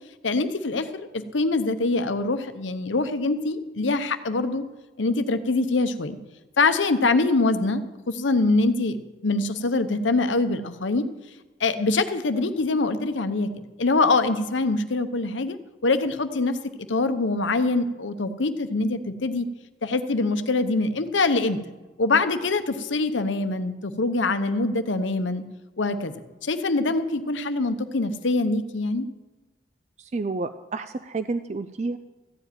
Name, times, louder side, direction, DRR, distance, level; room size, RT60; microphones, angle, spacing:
voice 1, 0.2-4.6 5.0-6.2 6.6-11.1 11.6-15.6 15.8-16.6 16.9-19.5 19.8-21.6 22.0-25.4 25.8-26.1 26.4-29.1, left 3 dB, 90° left, 10 dB, 0.8 m, -24 dB
voice 2, 30.0-32.0, right 3 dB, 35° right, 11 dB, 0.4 m, -30 dB
14.5 x 5.0 x 9.2 m, 1.2 s
head